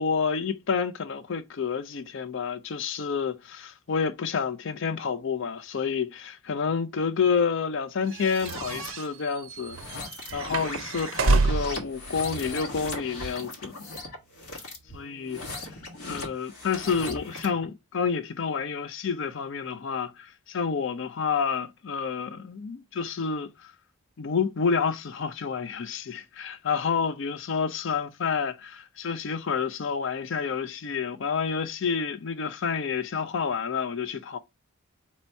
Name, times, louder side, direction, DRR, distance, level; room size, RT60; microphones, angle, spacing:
voice 1, 0.0-13.7 14.9-15.7 16.0-23.7 24.2-34.4, left 6 dB, 55° left, 0.4 m, -29 dB
sound 1, 8.1-11.9, right 3 dB, 60° right, 0.5 m, -27 dB
sound 2, 8.2-8.9 9.6-17.6, left 2 dB, 80° left, 1.3 m, -38 dB
4.2 x 2.8 x 4.4 m
head